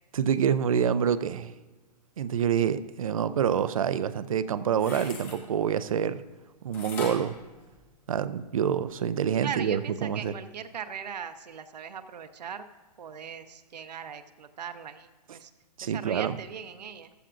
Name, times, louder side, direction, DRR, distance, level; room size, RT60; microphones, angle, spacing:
voice 1, 0.1-1.5 2.2-6.2 6.6-7.4 8.1-10.3 15.8-16.3, right 8 dB, 55° right, 14 dB, 0.5 m, -27 dB
sound 1, 4.7-5.4 6.7-8.3 8.8-8.9, left 4 dB, 10° left, 0.8 m, -41 dB
voice 2, 9.4-12.6 13.0-15.5 15.8-17.1, right 7 dB, 90° right, 9 dB, 0.9 m, -39 dB
15.0 x 12.0 x 2.5 m, 1.3 s
hypercardioid pair, 175°, 21 cm